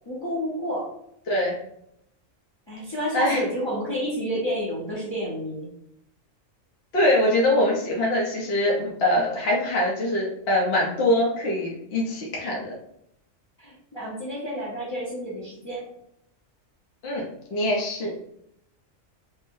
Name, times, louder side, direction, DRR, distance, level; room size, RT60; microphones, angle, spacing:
voice 1, 0.1-0.9 2.7-5.7 13.6-15.9, equal, 25° left, -6 dB, 0.9 m, -30 dB
voice 2, 6.9-12.7 17.0-17.2 17.5-18.3, left 1 dB, 55° left, -4 dB, 1.0 m, -23 dB
5.4 x 2.1 x 2.7 m, 0.74 s
omnidirectional pair, 1.4 m